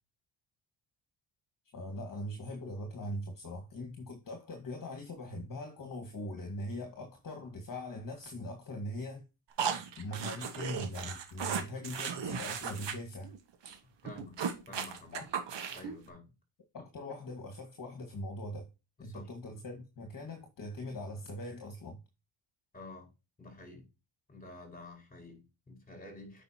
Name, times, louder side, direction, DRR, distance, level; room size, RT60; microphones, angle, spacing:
voice 1, 1.7-9.2 10.0-13.3 15.1-15.2 16.7-18.7 19.0-22.0, left 1 dB, 40° left, 1.8 m, -41 dB
sound 1, 9.6-12.9 13.2-13.4 13.6-13.8 14.0-16.0, right 7 dB, 60° right, 1.7 m, -36 dB
voice 2, 14.0-14.4 14.7-15.3 15.7-16.3 19.0-19.3 22.7-23.1 23.4-23.9 24.3-26.4, left 2 dB, 15° left, 5.0 m, -50 dB
9.3 x 5.5 x 2.9 m
cardioid pair, 120°, 49 cm